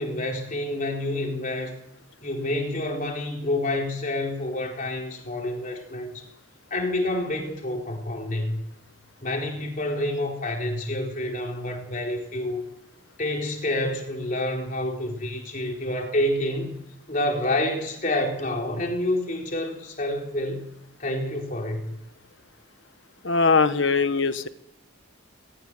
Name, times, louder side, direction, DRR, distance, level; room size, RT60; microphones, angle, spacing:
voice 1, 0.0-1.8 2.2-6.2 6.7-8.6 9.2-12.6 13.2-16.7 17.1-20.7 21.0-22.0, left 1 dB, 40° left, 1 dB, 4.4 m, -28 dB
voice 2, 23.2-24.5, left 4 dB, 70° left, 11 dB, 1.3 m, -21 dB
19.0 x 18.5 x 7.9 m, 0.80 s
head